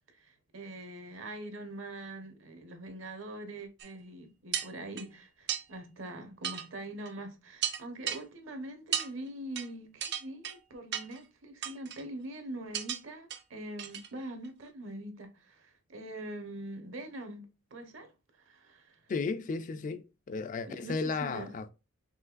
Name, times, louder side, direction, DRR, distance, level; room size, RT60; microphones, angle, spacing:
voice 1, 0.1-18.1 18.5-19.0 20.7-21.5, right 1 dB, 70° right, 1.1 m, -43 dB
sound 1, 3.8-3.9 4.5-5.1 5.5-5.6 6.4-6.7 7.1-7.2 7.6-8.2 8.9-9.1 9.6-9.7 10.0-10.6 10.9-11.2 11.6-12.0 12.7-13.0 13.3-13.4 13.8-14.1 14.4-14.5, right 9 dB, 55° right, 0.6 m, -34 dB
voice 2, 19.1-21.7, left 4 dB, 40° left, 0.4 m, -34 dB
5.5 x 3.1 x 2.4 m
head